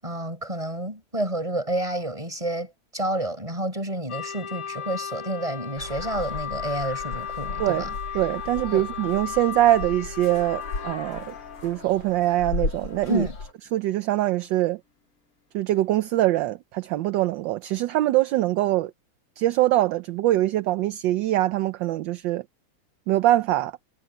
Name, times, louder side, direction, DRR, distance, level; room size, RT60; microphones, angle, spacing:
voice 1, 0.0-7.9 8.7-8.9 13.1-13.4, right 1 dB, 15° right, 6.9 m, -29 dB
sound 1, 4.1-12.1, left 8 dB, 40° left, 1.7 m, -35 dB
sound 2, 5.8-13.5, left 4 dB, 85° left, 4.6 m, -36 dB
voice 2, 8.1-11.3 11.6-13.3 13.7-14.8 15.5-18.9 19.4-22.4 23.1-23.7, right 15 dB, 70° right, 1.2 m, -23 dB
omnidirectional pair, 2.3 m